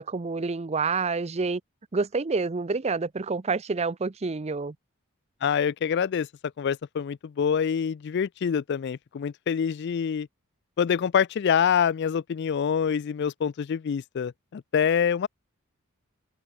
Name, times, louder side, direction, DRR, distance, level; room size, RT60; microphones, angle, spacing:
voice 1, 0.0-1.6 1.9-4.7, right 4 dB, 30° right, 0.5 m, -28 dB
voice 2, 5.4-6.3 6.6-10.3 10.8-15.3, left 7 dB, 50° left, 0.3 m, -26 dB
open air
head